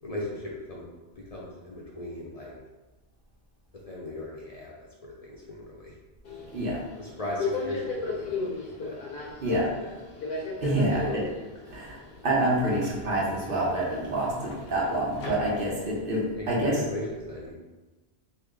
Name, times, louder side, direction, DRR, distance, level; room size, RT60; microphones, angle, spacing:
voice 1, 0.0-0.9 1.2-2.5 3.9-4.7 5.0-5.9 7.0-9.0 9.5-9.9 11.0-11.2 16.3-17.6, left 1 dB, 45° left, -4 dB, 0.6 m, -37 dB
Subway metro underground, 6.3-16.0, left 4 dB, 70° left, 0.9 m, -36 dB
voice 2, 10.6-11.3 11.7-16.8, right 1 dB, 60° right, -4 dB, 1.1 m, -27 dB
3.1 x 3.1 x 3.6 m, 1.2 s
omnidirectional pair, 1.1 m